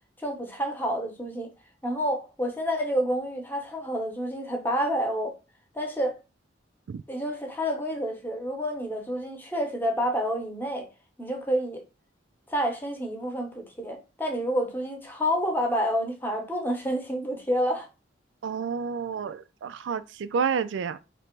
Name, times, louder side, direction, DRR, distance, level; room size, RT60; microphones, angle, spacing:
voice 1, 0.2-1.5 1.8-5.3 5.7-6.2 7.1-10.9 11.2-11.8 12.5-17.9, equal, 10° left, 0.9 m, -29 dB
voice 2, 18.4-21.0, right 6 dB, 75° right, 0.3 m, -30 dB
3.2 x 2.9 x 4.5 m
head